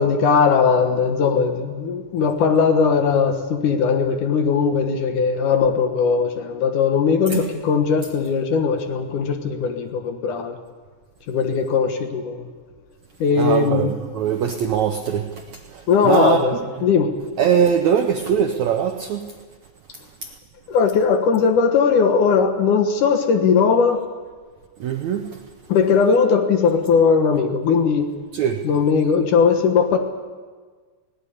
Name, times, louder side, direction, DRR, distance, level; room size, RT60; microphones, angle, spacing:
voice 1, 0.0-10.6 11.3-12.5 13.2-13.9 15.9-16.6 16.8-17.1 20.7-24.0 25.7-28.1 28.6-30.0, left 5 dB, 60° left, 6 dB, 2.5 m, -19 dB
voice 2, 13.4-16.6 17.4-19.2 20.2-20.3 24.8-25.4 28.3-28.6, right 8 dB, 90° right, 5 dB, 1.6 m, -22 dB
19.5 x 17.5 x 8.5 m, 1.5 s
omnidirectional pair, 4.6 m